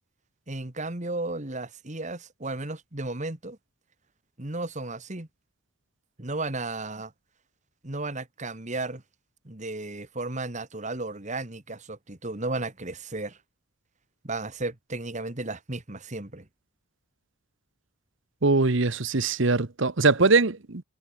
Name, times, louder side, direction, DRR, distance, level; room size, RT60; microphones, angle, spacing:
voice 1, 0.5-3.6 4.4-5.3 6.2-7.1 7.8-9.0 9.5-13.4 14.2-16.5, right 2 dB, 35° right, 1.9 m, -34 dB
voice 2, 18.4-20.8, right 3 dB, 60° right, 1.1 m, -22 dB
head